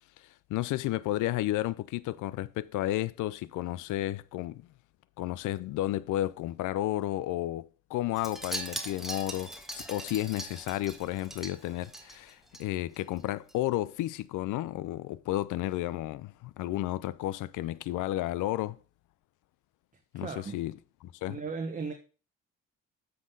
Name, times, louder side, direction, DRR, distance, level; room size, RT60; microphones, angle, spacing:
voice 1, 0.2-4.6 5.2-18.8 20.1-20.7 21.0-21.4, left 15 dB, 80° left, 0.5 m, -32 dB
Wind chime, 8.2-12.6 12.9-13.2 13.5-13.6, right 1 dB, ahead, 1.5 m, -40 dB
voice 2, 20.1-20.5 21.3-21.9, right 4 dB, 25° right, 1.3 m, -36 dB
7.5 x 6.0 x 3.8 m
cardioid pair, 90°, 30 cm